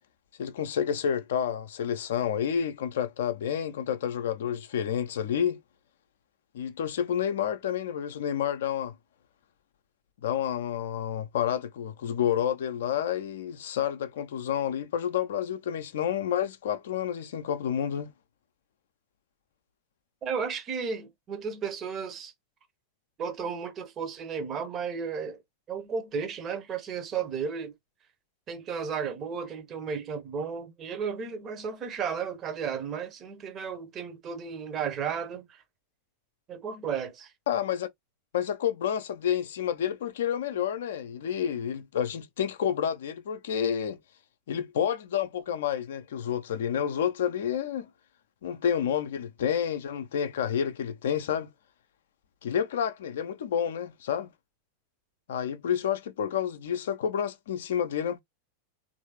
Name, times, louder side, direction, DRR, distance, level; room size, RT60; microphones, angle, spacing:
voice 1, 0.4-5.6 6.5-8.9 10.2-18.1 37.5-37.9 38.3-44.0 44.5-47.9 48.4-51.5 52.4-54.3 55.3-58.2, left 9 dB, 60° left, 0.5 m, -29 dB
voice 2, 20.2-22.3 23.2-25.4 25.7-27.7 28.5-35.6 36.5-37.3, right 6 dB, 30° right, 0.8 m, -34 dB
3.2 x 2.6 x 2.9 m
figure-of-eight pair, 90°, 0 cm